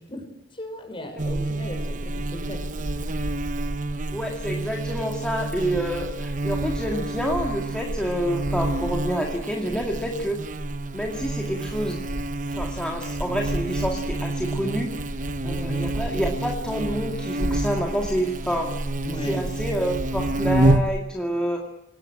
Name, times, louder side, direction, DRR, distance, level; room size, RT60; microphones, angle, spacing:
voice 1, 0.0-2.6 2.9-3.0 15.4-15.9 19.0-19.5, equal, 25° left, 5 dB, 5.8 m, -37 dB
Buzz, 1.2-21.0, right 2 dB, 40° right, 0.9 m, -28 dB
voice 2, 4.1-10.4 10.9-12.0 12.5-14.9 15.4-18.8 19.2-21.6, equal, 5° left, -1 dB, 2.2 m, -28 dB
27.5 x 18.0 x 8.7 m, 0.96 s
head